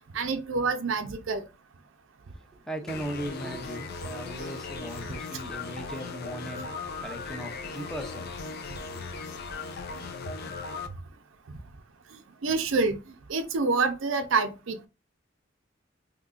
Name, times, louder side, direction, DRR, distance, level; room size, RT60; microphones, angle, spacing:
voice 1, 0.1-1.4 12.4-13.0 13.3-14.8, right 4 dB, 85° right, 0.5 m, -27 dB
voice 2, 2.7-6.7 7.0-8.6 8.9-9.2, equal, 5° left, 0.6 m, -38 dB
sound 1, 2.9-10.9, left 4 dB, 55° left, 0.4 m, -38 dB
3.7 x 2.8 x 2.4 m
head